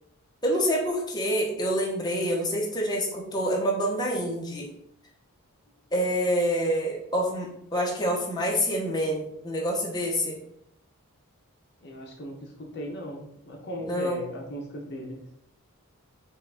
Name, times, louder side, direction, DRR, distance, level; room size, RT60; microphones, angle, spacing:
voice 1, 0.4-4.7 5.9-10.4 13.8-14.2, equal, 20° left, -2 dB, 0.9 m, -27 dB
voice 2, 11.8-12.5 12.7-15.2, equal, 50° left, 0 dB, 0.7 m, -37 dB
5.6 x 2.4 x 3.5 m, 0.73 s
head